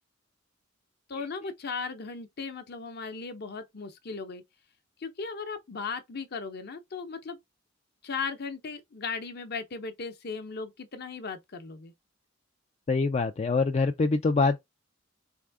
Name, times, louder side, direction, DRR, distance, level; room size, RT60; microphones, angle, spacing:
voice 1, 1.1-4.4 5.0-7.4 8.0-11.9, left 4 dB, 55° left, 0.8 m, -37 dB
voice 2, 12.9-14.6, left 3 dB, 35° left, 0.4 m, -25 dB
3.6 x 3.5 x 3.5 m
head